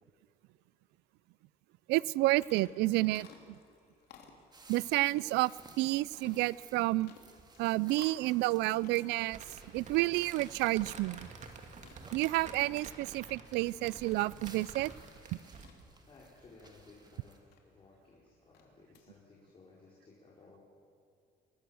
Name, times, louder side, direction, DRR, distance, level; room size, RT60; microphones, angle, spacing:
sound 1, 1.9-19.0, left 6 dB, 70° left, 3.0 m, -60 dB
voice 1, 1.9-3.3 4.7-5.5 5.8-7.1 7.6-9.4 9.7-11.3 12.1-14.9, right 19 dB, 85° right, 23 dB, 0.4 m, -30 dB
sound 2, 4.5-17.4, right 3 dB, 25° right, 2.9 m, -59 dB
Crumpling crinkling, 9.2-15.8, right 4 dB, 45° right, 2.5 m, -49 dB
voice 2, 16.1-20.6, left 3 dB, 30° left, -5 dB, 4.5 m, -58 dB
24.5 x 19.0 x 7.1 m, 2.5 s
cardioid pair, 110°, 17 cm